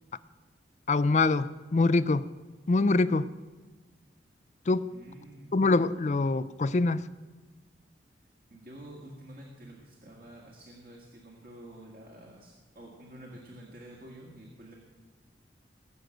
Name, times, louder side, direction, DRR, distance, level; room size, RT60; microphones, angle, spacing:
voice 1, 0.9-2.3 2.7-3.3 4.7-4.9 5.5-7.1, left 3 dB, 40° left, 16 dB, 0.4 m, -24 dB
voice 2, 4.9-5.5 8.5-14.7, right 1 dB, 50° right, -2 dB, 1.8 m, -49 dB
19.0 x 6.4 x 7.8 m, 1.3 s
head